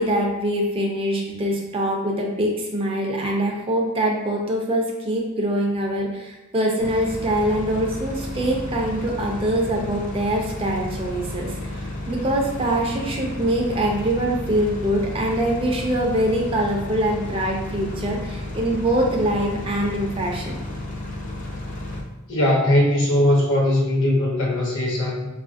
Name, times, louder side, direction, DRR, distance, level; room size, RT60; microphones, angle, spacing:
voice 1, 0.0-20.6, right 1 dB, 25° right, -1 dB, 0.4 m, -24 dB
sound 1, 6.8-22.0, left 1 dB, 35° left, 0.4 m, -32 dB
voice 2, 22.3-25.3, left 1 dB, 55° left, -2 dB, 0.8 m, -20 dB
4.3 x 2.4 x 2.4 m, 1.0 s
head